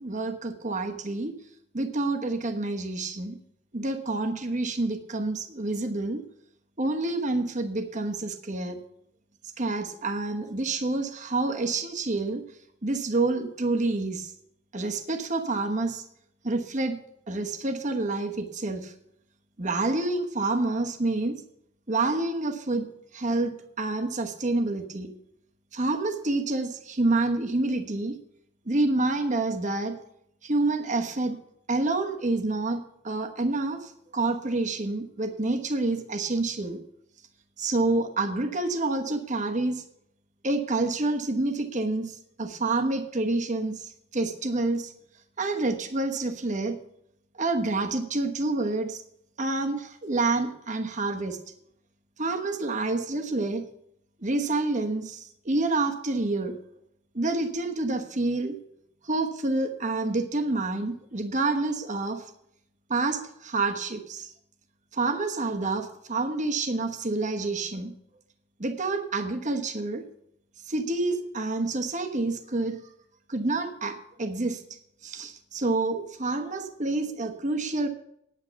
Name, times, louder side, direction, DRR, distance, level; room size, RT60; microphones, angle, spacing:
voice 1, 0.0-1.4 1.7-3.4 3.7-6.2 6.8-8.8 9.6-12.4 12.8-14.3 14.7-16.0 16.4-17.0 17.3-18.9 19.6-21.4 21.9-25.1 25.7-28.2 28.6-29.9 30.4-31.4 31.7-36.8 37.6-39.8 40.4-44.9 45.4-46.8 47.4-49.0 49.4-51.4 52.2-53.6 54.2-56.5 57.1-58.6 59.0-62.2 62.9-64.3 64.9-67.9 68.6-70.1 70.7-72.8 73.3-74.6 75.0-77.9, right 2 dB, 40° right, 6 dB, 1.1 m, -28 dB
9.4 x 8.6 x 6.9 m, 0.75 s
head